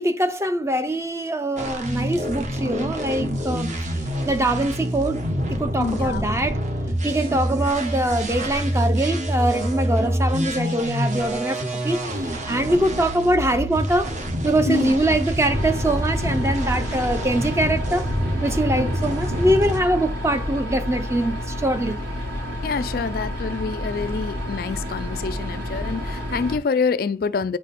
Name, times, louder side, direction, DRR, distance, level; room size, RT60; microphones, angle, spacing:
voice 1, 0.0-5.2 5.5-6.6 7.0-14.1 14.4-18.0 18.4-22.0 23.9-24.0, right 1 dB, 15° right, 0.7 m, -23 dB
sound 1, 1.6-19.8, equal, 40° right, 1.3 m, -26 dB
voice 2, 5.8-6.3 14.7-15.2 16.9-17.2 18.8-18.9 22.6-27.6, left 5 dB, 50° left, 0.3 m, -27 dB
sound 2, 15.5-26.6, left 1 dB, 70° right, 3.5 m, -30 dB
9.1 x 4.9 x 4.2 m
head